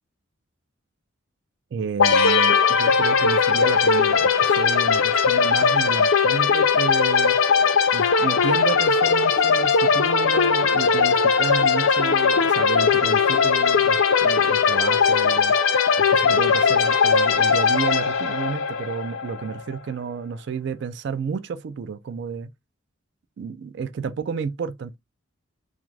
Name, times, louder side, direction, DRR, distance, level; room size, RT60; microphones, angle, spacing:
voice 1, 1.7-7.4 7.9-15.5 16.1-22.5 23.4-25.0, right 6 dB, 55° right, 0.3 m, -31 dB
sound 1, 2.0-19.6, left 5 dB, 75° left, 0.4 m, -19 dB
2.4 x 2.4 x 3.1 m
head